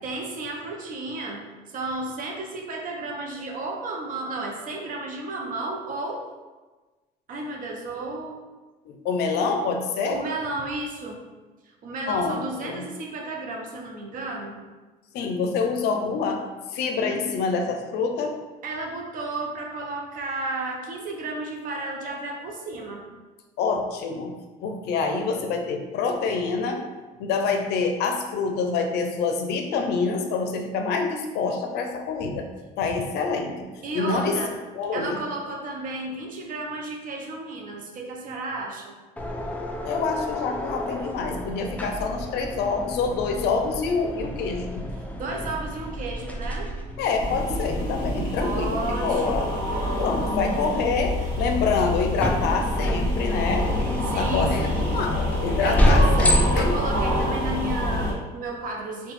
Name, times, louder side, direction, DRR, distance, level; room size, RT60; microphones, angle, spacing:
voice 1, 0.0-6.3 7.3-8.4 10.1-11.2 11.8-14.6 18.6-23.1 33.8-34.6 34.9-38.9 45.2-46.7 48.4-49.6 54.1-55.0 55.6-59.1, right 2 dB, 50° right, 1 dB, 0.6 m, -33 dB
voice 2, 8.9-10.2 12.1-12.8 15.1-16.4 16.7-18.4 23.6-24.3 24.6-26.8 27.2-32.5 32.8-34.3 34.7-35.2 39.8-44.8 47.0-49.5 50.0-53.7 54.2-56.8, left 4 dB, 75° left, 4 dB, 0.4 m, -26 dB
sound 1, 39.2-58.1, equal, 10° left, 0.3 m, -30 dB
sound 2, 47.2-58.1, left 1 dB, 25° left, 1.2 m, -26 dB
2.8 x 2.2 x 3.0 m, 1.2 s
cardioid pair, 110°, 17 cm